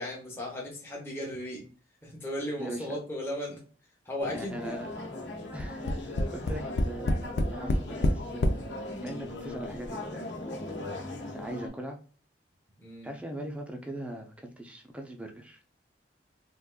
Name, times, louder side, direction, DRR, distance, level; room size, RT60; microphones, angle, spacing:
voice 1, 0.0-1.6 2.0-3.6 4.1-4.8 12.8-13.1, left 1 dB, 15° left, -3 dB, 0.8 m, -36 dB
voice 2, 2.6-3.0 4.3-4.9 5.5-8.5 9.0-10.3 11.1-12.0 13.0-15.6, right 1 dB, 5° right, 3 dB, 0.5 m, -40 dB
sound 1, 4.2-11.7, left 2 dB, 75° left, 0.8 m, -39 dB
Tap, 5.6-8.6 9.4-9.5 9.8-9.9, left 1 dB, 60° left, 0.4 m, -27 dB
3.6 x 2.5 x 2.2 m, 0.40 s
head